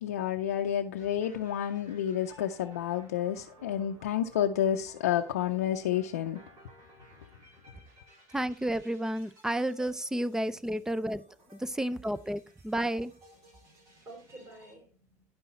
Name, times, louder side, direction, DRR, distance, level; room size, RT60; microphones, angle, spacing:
voice 1, 0.0-6.4, left 10 dB, 85° left, 0.5 m, -30 dB
sound 1, 1.0-14.7, equal, 55° right, 4.6 m, -57 dB
voice 2, 8.3-11.2 11.5-13.1, right 1 dB, 5° right, 0.6 m, -31 dB
voice 3, 13.3-15.3, right 2 dB, 35° right, 4.6 m, -53 dB
10.5 x 5.4 x 4.1 m
hypercardioid pair, 85°, 8 cm